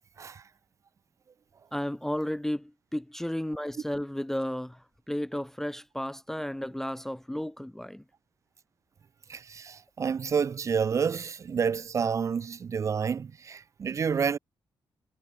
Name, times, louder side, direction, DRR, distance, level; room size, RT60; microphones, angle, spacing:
voice 1, 1.7-8.0, left 1 dB, 5° left, 0.6 m, -33 dB
voice 2, 9.3-14.4, right 6 dB, 35° right, 0.7 m, -29 dB
wide cardioid pair, 175°, 9 cm